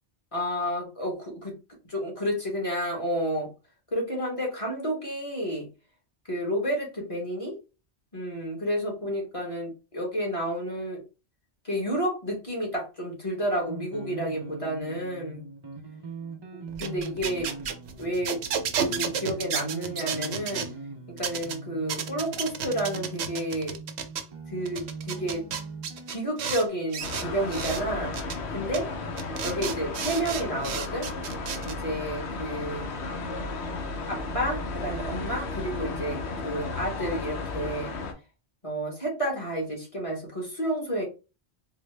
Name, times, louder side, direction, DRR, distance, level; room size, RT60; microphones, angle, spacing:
voice 1, 0.3-1.5 1.9-3.5 3.9-5.7 6.3-7.6 8.1-11.0 11.6-15.5 16.5-17.5 18.0-18.4 18.8-20.7 21.2-23.8 24.5-25.4 26.1-28.2 28.5-28.9 29.4-31.1 31.6-32.9 34.1-37.9 38.6-41.0, equal, 35° left, -2 dB, 1.1 m, -30 dB
sound 1, 13.7-26.7, right 4 dB, 40° right, 0.4 m, -41 dB
sound 2, 16.7-20.7 21.2-21.5 21.9-24.2 24.7-26.6 26.9-27.8 28.1-28.4 28.7-28.8 29.2-31.7, right 7 dB, 80° right, 0.9 m, -32 dB
sound 3, 27.0-38.1, left 3 dB, 80° left, 1.0 m, -34 dB
3.9 x 2.0 x 3.2 m, 0.30 s
omnidirectional pair, 1.1 m